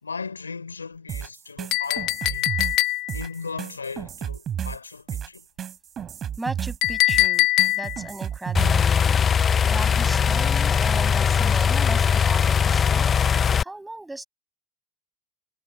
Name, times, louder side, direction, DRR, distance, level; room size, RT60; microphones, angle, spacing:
voice 1, 0.0-2.5 3.1-5.5, left 5 dB, 90° left, 3.4 m, -36 dB
sound 1, 1.1-8.9, right 9 dB, 35° right, 3.1 m, -32 dB
Chink clink, 1.7-3.3 6.8-8.1, left 19 dB, 55° left, 0.9 m, -22 dB
voice 2, 6.4-9.2 9.6-14.3, right 2 dB, 10° right, 5.8 m, -36 dB
sound 2, 8.5-13.6, left 7 dB, 30° left, 0.3 m, -20 dB
figure-of-eight pair, 75°, 0 cm